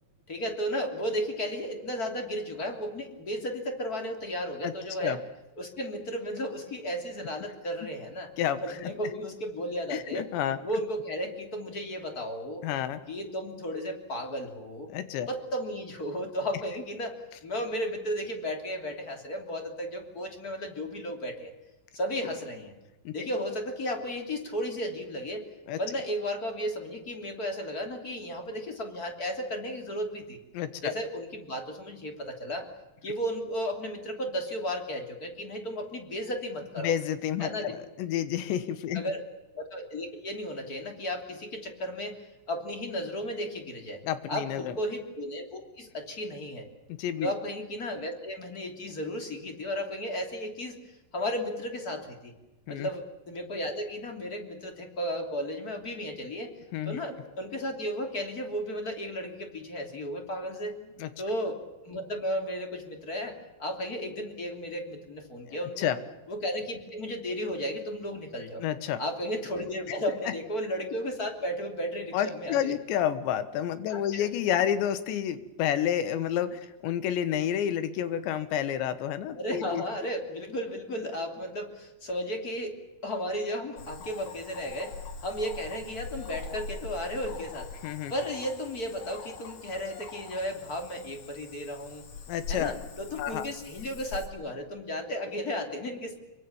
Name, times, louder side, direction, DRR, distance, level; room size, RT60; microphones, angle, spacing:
voice 1, 0.3-5.2 5.6-8.3 8.6-10.3 10.6-12.6 13.1-14.9 15.3-17.2 17.4-21.5 21.9-22.7 23.1-25.4 25.8-30.4 30.8-32.7 33.0-36.9 37.4-37.7 38.9-39.2 39.5-42.2 42.5-44.0 44.3-46.7 47.2-50.8 51.1-52.3 52.7-56.5 56.8-60.7 61.2-65.9 66.3-68.6 69.0-72.7 73.9-74.3 79.3-87.7 88.1-92.1 92.5-96.2, equal, 25° left, 3 dB, 2.9 m, -34 dB
voice 2, 8.4-8.9 9.9-10.6 12.6-13.0 14.9-15.3 23.1-23.3 25.7-25.8 30.5-30.9 36.8-39.0 44.0-44.8 47.0-47.3 52.7-52.9 56.7-57.0 61.0-61.1 65.5-66.0 68.6-69.0 69.9-70.0 72.1-79.8 87.8-88.1 92.3-92.7 93.2-93.5, left 10 dB, 85° left, 12 dB, 3.6 m, -30 dB
Cricket / Frog, 83.8-94.3, left 4 dB, 55° left, 3.8 m, -43 dB
25.0 x 23.5 x 7.2 m, 1.0 s
omnidirectional pair, 5.0 m